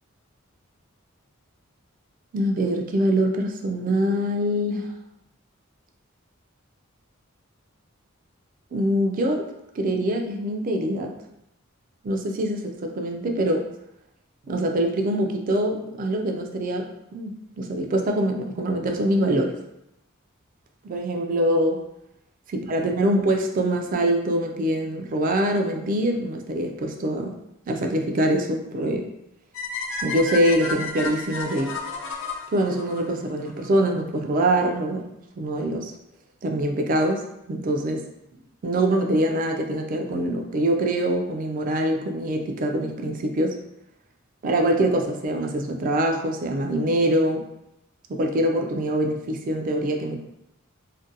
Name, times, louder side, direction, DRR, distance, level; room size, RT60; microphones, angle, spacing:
voice 1, 2.3-4.9 8.7-9.5 9.8-11.1 12.0-13.7 14.5-19.5 20.8-21.8 22.7-27.3 27.7-29.1 30.0-31.8 32.5-35.9 36.4-37.2 37.5-38.0 38.6-43.6 44.4-47.4 48.1-50.2, right 1 dB, 40° right, 3 dB, 0.3 m, -24 dB
sound 1, 29.5-33.7, left 3 dB, 65° left, 0.4 m, -32 dB
2.5 x 2.2 x 2.6 m, 0.82 s
head